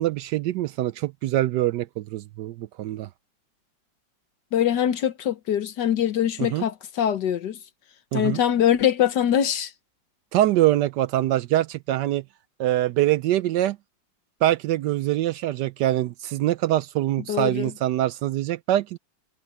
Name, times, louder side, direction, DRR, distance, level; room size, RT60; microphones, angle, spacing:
voice 1, 0.0-3.1 6.4-6.6 8.1-8.4 10.3-12.2 12.6-13.8 14.4-19.0, right 14 dB, 75° right, 1.1 m, -24 dB
voice 2, 4.5-7.6 8.1-9.7 17.3-17.7, left 10 dB, 65° left, 1.6 m, -23 dB
omnidirectional pair, 2.0 m